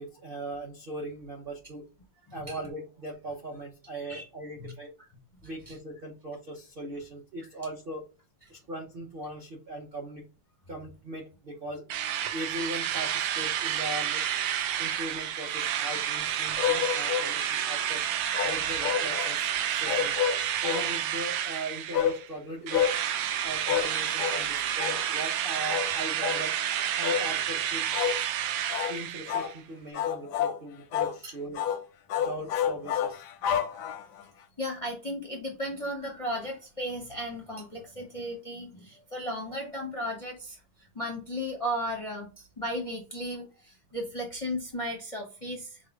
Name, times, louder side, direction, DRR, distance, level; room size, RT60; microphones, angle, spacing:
voice 1, 0.0-1.8 2.3-4.9 5.4-8.0 8.5-10.2 10.7-11.8 12.3-14.2 14.8-18.0 18.4-20.1 20.4-22.8 23.4-28.0 28.9-31.6 32.2-33.2, right 1 dB, 60° right, -3 dB, 0.5 m, -39 dB
voice 2, 2.3-2.6 4.0-4.3 4.6-4.7 5.7-5.8 31.2-31.3 34.6-45.8, equal, 50° left, 0 dB, 0.3 m, -35 dB
Drill, 11.9-22.3 22.7-29.6, right 10 dB, 85° right, 1.5 m, -30 dB
sound 1, 16.6-17.3 18.3-19.4 19.9-20.9 21.9-22.2 22.7-23.0 23.7-23.9 24.2-24.4 24.8-25.0 25.7-25.9 26.2-26.5 27.0-27.3 27.9-28.2 28.7-29.0 29.3-29.5 29.9-30.6 30.9-31.2 31.5-31.8 32.1-34.2, left 9 dB, 75° left, 1.0 m, -29 dB
4.8 x 2.2 x 4.4 m, 0.33 s
omnidirectional pair, 2.3 m